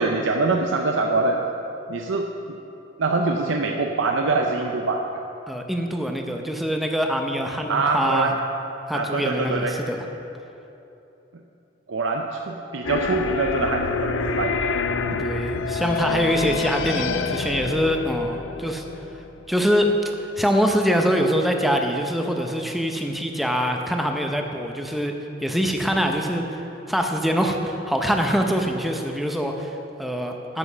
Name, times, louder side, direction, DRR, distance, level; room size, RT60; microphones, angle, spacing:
voice 1, 0.0-1.4 1.9-2.3 3.0-5.2 7.7-8.4 8.9-9.8 11.9-14.7 15.0-15.3, right 3 dB, 75° right, 2 dB, 0.6 m, -24 dB
voice 2, 5.5-8.3 8.9-10.0 15.1-18.8 19.5-19.9 20.4-25.1 25.4-26.4 26.9-30.6, equal, ahead, 3 dB, 0.7 m, -24 dB
sound 1, 12.8-19.6, left 5 dB, 80° left, 0.5 m, -27 dB
9.7 x 7.5 x 6.1 m, 2.9 s
head